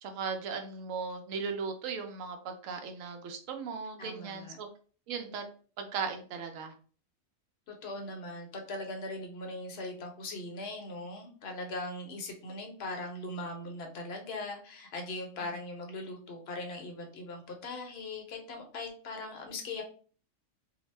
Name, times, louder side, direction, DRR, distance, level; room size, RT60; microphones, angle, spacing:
voice 1, 0.0-4.7 5.1-5.5 5.8-6.7, right 5 dB, 80° right, 5 dB, 1.0 m, -37 dB
voice 2, 4.0-4.6 7.7-19.8, left 2 dB, 60° left, 3 dB, 0.8 m, -40 dB
2.7 x 2.0 x 3.1 m, 0.41 s
omnidirectional pair, 1.4 m